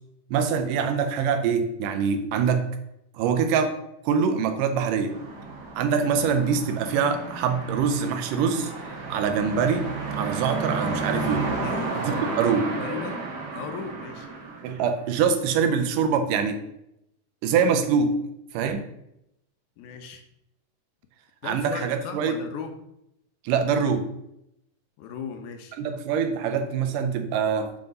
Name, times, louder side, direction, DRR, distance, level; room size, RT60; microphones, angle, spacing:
voice 1, 0.3-2.7 3.1-3.8 4.1-5.2 5.8-8.7 9.1-11.5 12.0-12.8 14.6-16.6 17.4-18.2 18.5-18.8 21.4-22.4 23.4-24.1 25.8-27.8, right 6 dB, 80° right, 7 dB, 2.2 m, -24 dB
sound 1, 5.1-15.3, right 3 dB, 60° right, 2.6 m, -32 dB
voice 2, 11.6-12.0 12.7-13.2 13.5-14.3 19.8-20.2 21.4-22.8 25.0-25.8, left 6 dB, 75° left, 6 dB, 1.9 m, -36 dB
7.7 x 3.6 x 5.2 m, 0.81 s
omnidirectional pair, 4.0 m